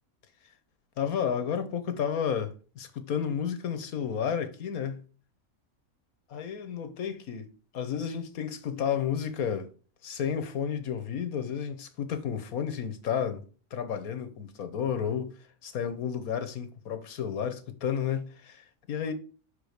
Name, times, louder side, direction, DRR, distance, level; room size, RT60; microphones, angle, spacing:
voice 1, 1.0-5.0 6.3-9.7 10.0-13.4 13.7-19.1, left 8 dB, 90° left, 1.5 m, -32 dB
5.7 x 5.1 x 6.4 m
omnidirectional pair, 1.5 m